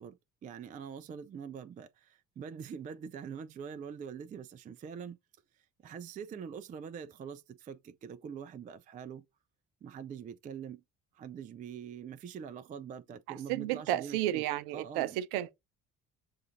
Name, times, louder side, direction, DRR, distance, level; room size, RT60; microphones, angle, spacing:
voice 1, 0.0-5.2 5.8-9.3 9.8-10.8 11.1-14.4 14.7-15.2, right 7 dB, 20° right, 0.4 m, -44 dB
voice 2, 13.3-15.5, right 13 dB, 60° right, 0.6 m, -32 dB
6.8 x 2.4 x 2.5 m
figure-of-eight pair, 50°, 44 cm